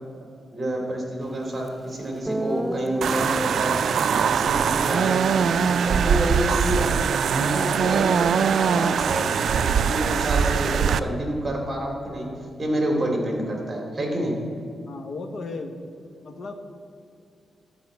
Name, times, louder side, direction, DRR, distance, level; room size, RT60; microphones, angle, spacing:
voice 1, 0.5-3.8 4.3-7.0 7.3-12.3 12.6-14.3, right 1 dB, 30° right, 1 dB, 2.4 m, -28 dB
Guitar, 1.7-1.8 2.3-6.4, right 1 dB, 5° right, 0.4 m, -33 dB
sound 1, 3.0-11.0, right 7 dB, 80° right, 0.3 m, -22 dB
voice 2, 14.9-15.8 16.2-16.5, left 3 dB, 65° left, 6 dB, 1.0 m, -36 dB
12.0 x 4.9 x 7.8 m, 2.4 s
wide cardioid pair, 115°, 0 cm